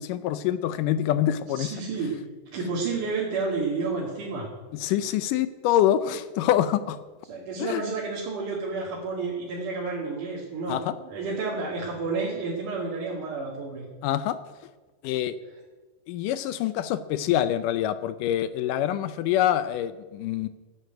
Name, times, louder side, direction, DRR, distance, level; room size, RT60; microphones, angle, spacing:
voice 1, 0.0-1.7 4.7-7.0 7.6-7.8 10.7-11.0 14.0-14.4 15.0-15.4 16.1-20.5, left 11 dB, 80° left, 13 dB, 2.0 m, -25 dB
voice 2, 1.6-2.2 2.5-4.5 7.3-13.9, right 4 dB, 60° right, -5 dB, 3.8 m, -30 dB
12.5 x 9.9 x 9.2 m, 1.3 s
omnidirectional pair, 4.2 m